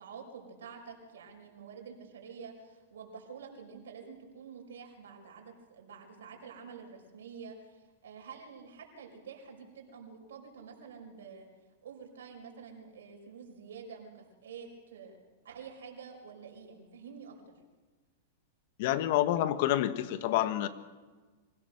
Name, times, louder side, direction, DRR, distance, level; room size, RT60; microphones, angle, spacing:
voice 1, 0.0-11.5 11.8-15.2 15.4-17.5, right 6 dB, 85° right, 1 dB, 5.4 m, -48 dB
voice 2, 18.8-20.7, left 13 dB, 60° left, 12 dB, 1.4 m, -28 dB
25.0 x 17.0 x 6.6 m, 1.3 s
hypercardioid pair, 135°, 0 cm